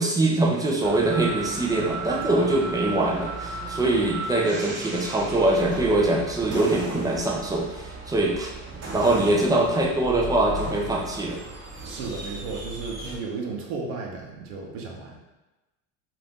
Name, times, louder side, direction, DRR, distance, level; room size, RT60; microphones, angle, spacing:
voice 1, 0.0-8.5 8.9-11.4, right 2 dB, 10° right, -2 dB, 0.3 m, -23 dB
sound 1, 0.8-13.2, right 2 dB, 35° right, 0.8 m, -36 dB
voice 2, 11.8-15.2, right 4 dB, 85° right, 0 dB, 0.8 m, -34 dB
2.7 x 2.5 x 3.4 m, 1.1 s
supercardioid pair, 105°, 45 cm